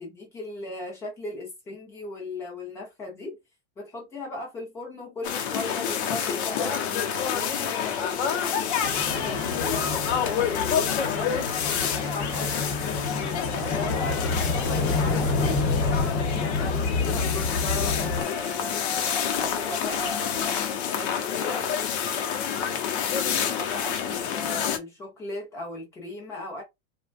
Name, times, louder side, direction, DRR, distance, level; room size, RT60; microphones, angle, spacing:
voice 1, 0.0-3.4 3.8-9.9 10.2-11.3 11.7-12.5 13.6-21.7 22.5-26.6, left 2 dB, 10° left, 0.4 m, -37 dB
sound 1, 5.2-24.8, left 8 dB, 60° left, 0.6 m, -28 dB
sound 2, 8.8-18.2, left 3 dB, 30° left, 1.0 m, -28 dB
3.3 x 2.1 x 2.5 m
supercardioid pair, 180°, 38 cm